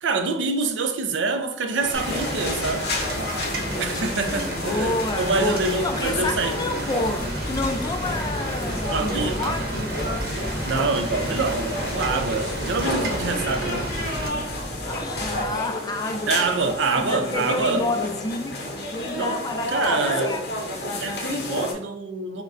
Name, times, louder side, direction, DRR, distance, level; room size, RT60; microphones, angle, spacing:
voice 1, 0.0-2.9 3.8-6.5 8.9-9.8 10.7-14.0 16.3-17.9 19.1-19.4 19.7-20.3 21.0-22.4, right 3 dB, 80° right, 0.5 m, -26 dB
sound 1, 1.8-21.7, left 1 dB, 60° left, 0.8 m, -31 dB
Rain, 1.9-14.3, right 1 dB, 55° right, 0.9 m, -32 dB
voice 2, 3.7-4.3 4.6-10.1 14.8-16.4 16.6-18.6 18.9-20.4, left 2 dB, 20° left, 0.3 m, -29 dB
sound 2, 7.1-15.5, equal, 5° right, 0.7 m, -35 dB
5.9 x 2.2 x 2.5 m
head